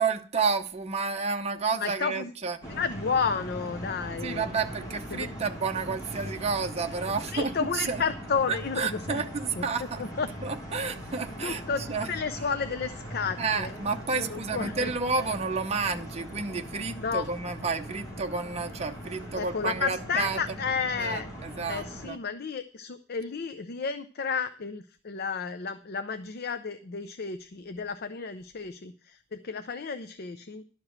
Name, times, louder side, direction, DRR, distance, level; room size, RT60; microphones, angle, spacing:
voice 1, 0.0-2.6 4.2-8.0 8.5-10.0 10.4-11.6 11.9-12.1 13.4-20.4 21.0-22.2, right 4 dB, 35° right, 0.8 m, -30 dB
voice 2, 1.7-2.3 2.8-4.5 5.1-5.3 7.2-9.2 9.6-9.7 10.0-10.3 11.4-13.7 14.2-14.9 17.0-17.3 19.3-21.3 21.7-30.6, left 5 dB, 55° left, 0.5 m, -32 dB
sound 1, 2.6-22.1, equal, 20° left, 2.3 m, -40 dB
12.0 x 4.9 x 7.2 m
head